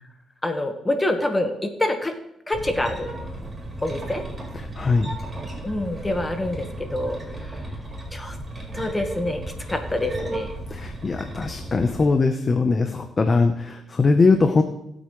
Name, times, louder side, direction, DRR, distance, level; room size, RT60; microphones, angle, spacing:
voice 1, 0.4-2.1 2.5-3.1 3.8-4.2 5.6-7.2 8.1-8.3 8.7-9.4 9.7-10.5, left 1 dB, 15° left, 5 dB, 1.5 m, -26 dB
sound 1, 2.5-12.0, right 1 dB, 25° right, 4.6 m, -34 dB
voice 2, 4.5-5.1 10.7-14.6, left 4 dB, 35° left, 6 dB, 1.0 m, -21 dB
20.0 x 8.1 x 3.3 m, 0.81 s
cardioid pair, 90°, 0 cm